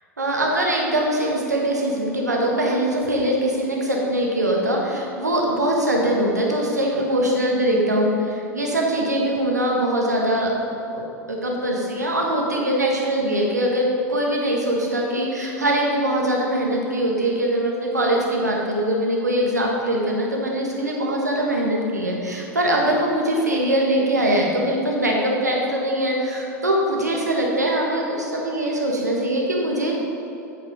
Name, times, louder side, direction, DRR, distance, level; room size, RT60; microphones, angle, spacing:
voice 1, 0.2-10.5 10.9-29.9, right 1 dB, 90° right, -1 dB, 1.5 m, -22 dB
8.3 x 7.4 x 5.1 m, 2.8 s
figure-of-eight pair, 85°, 9 cm